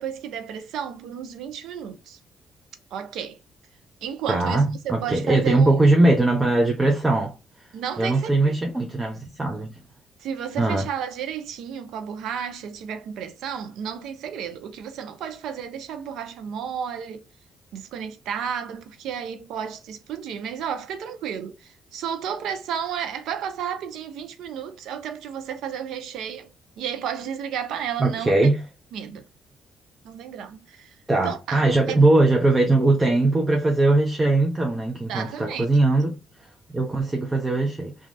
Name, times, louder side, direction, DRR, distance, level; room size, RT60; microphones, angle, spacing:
voice 1, 0.0-2.2 2.9-3.4 4.0-5.8 7.7-8.5 10.2-17.2 17.7-26.5 26.8-28.5 28.9-29.2 30.0-31.0 31.2-32.0 35.1-35.7, right 8 dB, 85° right, 0.5 m, -32 dB
voice 2, 4.3-7.4 8.0-9.8 10.6-10.9 28.0-28.6 31.1-36.2 36.7-38.0, right 2 dB, 20° right, 0.6 m, -20 dB
3.0 x 2.4 x 2.6 m
cardioid pair, 90°, 0 cm